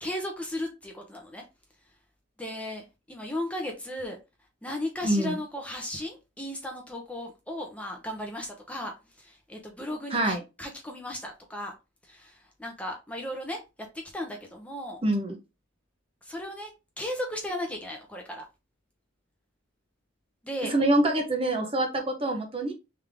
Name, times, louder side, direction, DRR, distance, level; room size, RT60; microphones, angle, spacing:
voice 1, 0.0-1.4 2.4-4.2 4.6-8.9 9.2-11.7 12.1-13.6 14.1-15.0 16.2-16.7 17.0-18.4 20.4-20.8, left 1 dB, 5° left, 2 dB, 0.8 m, -35 dB
voice 2, 5.0-5.4 10.1-10.4 15.0-15.4 20.6-22.7, right 1 dB, 30° right, 3 dB, 0.9 m, -25 dB
3.5 x 3.5 x 3.5 m, 0.26 s
head